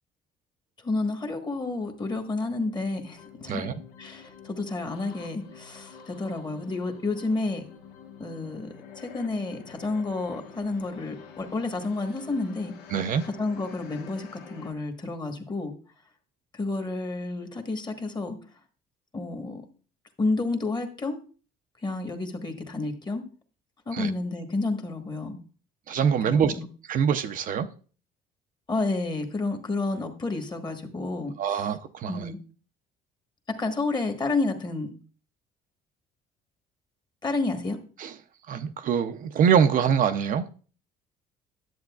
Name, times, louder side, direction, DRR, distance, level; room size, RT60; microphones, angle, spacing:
voice 1, 0.8-3.7 4.0-7.6 8.2-8.7 9.0-12.7 13.2-15.7 16.5-18.4 19.1-19.6 20.2-21.2 21.8-23.2 23.9-25.4 26.3-26.7 28.7-31.6 32.1-32.4 33.6-34.9 37.2-37.8, left 3 dB, 25° left, 1.2 m, -30 dB
sound 1, 1.5-14.7, left 7 dB, 85° left, 1.2 m, -48 dB
voice 2, 3.5-3.8 12.9-13.2 23.9-24.1 25.9-26.5 26.9-27.7 31.4-32.3 38.0-38.1 38.5-40.4, right 7 dB, 55° right, 0.5 m, -24 dB
10.5 x 7.6 x 2.3 m
cardioid pair, 110°, 17 cm